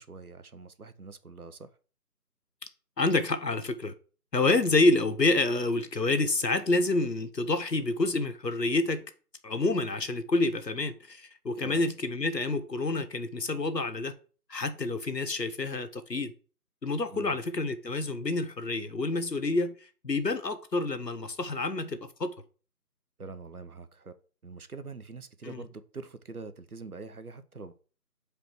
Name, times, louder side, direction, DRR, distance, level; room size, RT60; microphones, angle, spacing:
voice 1, 0.0-1.7 11.6-11.8 17.1-17.3 23.2-24.2 24.4-27.7, right 4 dB, 65° right, 0.9 m, -44 dB
voice 2, 3.0-3.9 4.3-9.0 9.4-14.1 14.5-16.3 16.8-19.8 20.0-22.3 25.4-25.6, left 2 dB, 90° left, 1.1 m, -28 dB
5.1 x 4.6 x 6.0 m
figure-of-eight pair, 160°, 48 cm